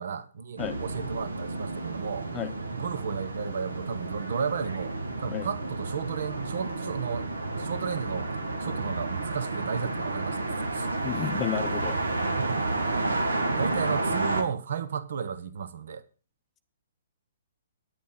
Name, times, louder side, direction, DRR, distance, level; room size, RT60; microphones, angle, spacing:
voice 1, 0.0-2.3 2.7-7.3 7.6-8.3 8.6-10.9 12.4-13.1 13.6-16.0, right 7 dB, 65° right, 0.9 m, -34 dB
sound 1, 0.6-14.4, right 2 dB, 85° right, 1.6 m, -31 dB
voice 2, 11.0-12.0, left 10 dB, 20° left, 0.6 m, -32 dB
10.0 x 8.5 x 5.6 m
hypercardioid pair, 130°, 0 cm